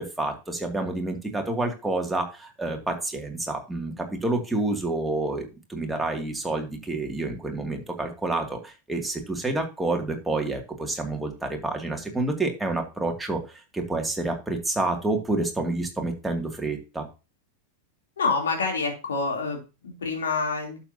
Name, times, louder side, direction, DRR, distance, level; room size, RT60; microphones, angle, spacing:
voice 1, 0.0-13.4 13.7-17.1, right 2 dB, 5° right, 2 dB, 2.4 m, -28 dB
voice 2, 18.2-20.8, left 4 dB, 65° left, 2 dB, 3.1 m, -27 dB
11.5 x 7.2 x 2.8 m, 0.29 s
figure-of-eight pair, 90°, 0 cm